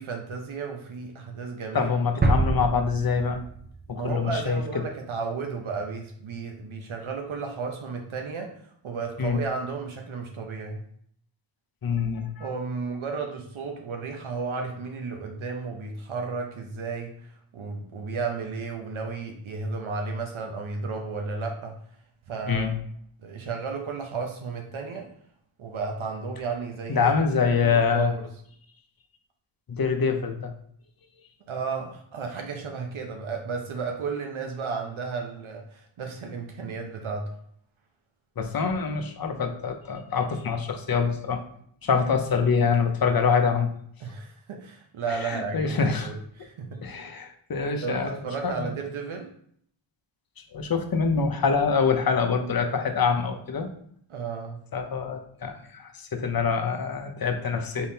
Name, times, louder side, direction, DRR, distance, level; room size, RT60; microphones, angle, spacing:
voice 1, 0.0-1.9 3.9-8.5 8.8-10.8 12.4-21.8 22.3-22.7 23.2-25.1 25.6-27.1 27.6-28.3 31.5-37.3 44.0-46.8 47.8-49.3 54.1-54.6, right 4 dB, 75° right, 3 dB, 0.7 m, -33 dB
voice 2, 1.7-3.4 3.9-4.8 9.2-9.4 11.8-12.5 22.5-22.7 26.9-28.1 29.7-30.5 38.4-41.4 41.8-43.8 45.1-46.1 46.8-48.7 50.5-53.7 54.7-57.9, left 5 dB, 45° left, 5 dB, 0.7 m, -25 dB
sound 1, 2.2-4.1, right 2 dB, 20° right, 0.5 m, -25 dB
4.4 x 3.6 x 2.8 m, 0.65 s
cardioid pair, 60°, 49 cm